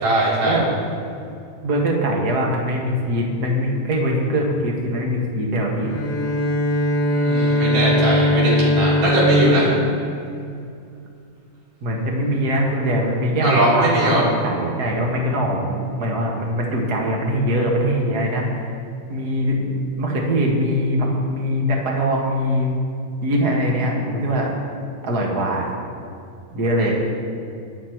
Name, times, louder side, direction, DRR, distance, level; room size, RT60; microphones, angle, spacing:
voice 1, 0.0-0.6 7.1-9.7 13.4-14.2 26.8-26.9, right 1 dB, 75° right, -8 dB, 5.2 m, -19 dB
voice 2, 1.6-6.0 11.8-18.5 19.1-22.8 23.2-24.5 25.0-25.7 26.5-26.9, equal, 35° right, -1 dB, 1.8 m, -22 dB
Bowed string instrument, 5.8-10.6, left 1 dB, 50° left, 2.5 m, -21 dB
23.5 x 8.9 x 3.1 m, 2.4 s
omnidirectional pair, 3.7 m